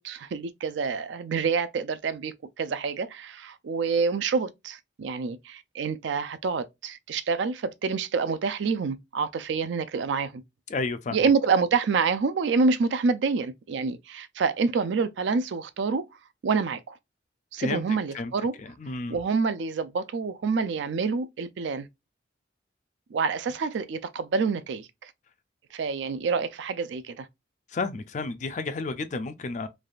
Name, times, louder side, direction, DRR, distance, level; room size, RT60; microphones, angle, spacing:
voice 1, 0.0-10.4 11.1-16.0 16.4-17.0 17.5-18.5 19.1-21.9 23.1-25.1 25.7-27.3, right 5 dB, 75° right, 0.4 m, -27 dB
voice 2, 10.7-11.3 17.6-17.8 18.1-18.3 18.6-19.2 27.7-29.7, left 3 dB, 40° left, 0.4 m, -31 dB
3.3 x 2.3 x 2.3 m
head